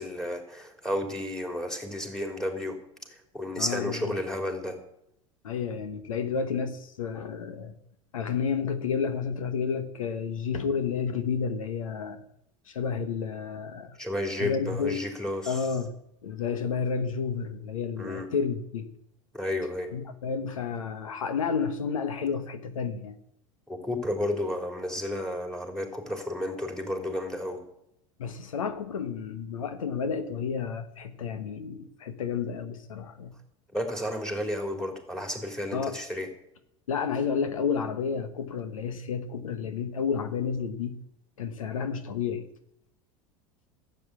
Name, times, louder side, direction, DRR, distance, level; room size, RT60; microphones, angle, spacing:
voice 1, 0.0-2.8 3.1-4.8 14.0-15.6 18.0-18.3 19.3-19.9 23.7-27.6 33.7-36.3, left 1 dB, 5° left, 4 dB, 3.7 m, -32 dB
voice 2, 3.6-4.2 5.4-7.7 8.1-12.2 12.7-14.0 14.4-15.1 15.5-15.9 16.2-18.9 19.9-23.2 28.2-33.3 35.7-36.0 36.9-41.0 41.4-42.5, left 6 dB, 90° left, 10 dB, 1.1 m, -31 dB
12.5 x 8.2 x 8.2 m, 0.76 s
hypercardioid pair, 85°, 17 cm